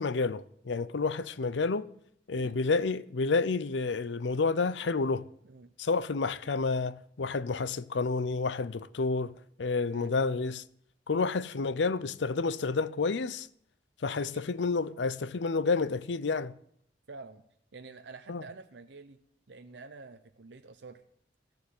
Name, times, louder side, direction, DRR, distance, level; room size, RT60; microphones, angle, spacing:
voice 1, 0.0-1.9 2.3-5.3 5.8-10.6 11.1-13.5 14.0-16.5 18.3-18.4, left 4 dB, 80° left, 0.6 m, -30 dB
voice 2, 17.1-17.4 17.7-19.2 19.5-21.0, right 3 dB, 75° right, 0.8 m, -48 dB
14.5 x 7.0 x 9.4 m
head